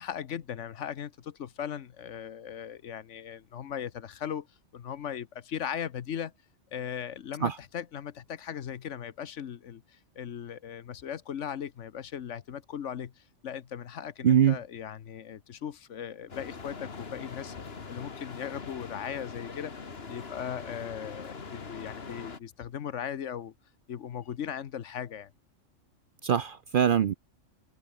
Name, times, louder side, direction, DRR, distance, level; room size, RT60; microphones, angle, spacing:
voice 1, 0.0-4.5 4.7-6.3 6.7-19.7 20.1-23.5 23.9-25.3, left 9 dB, 70° left, 1.2 m, -38 dB
voice 2, 14.2-14.6 26.2-27.1, right 9 dB, 55° right, 0.6 m, -23 dB
sound 1, 16.3-22.4, left 4 dB, 50° left, 2.0 m, -42 dB
omnidirectional pair, 1.3 m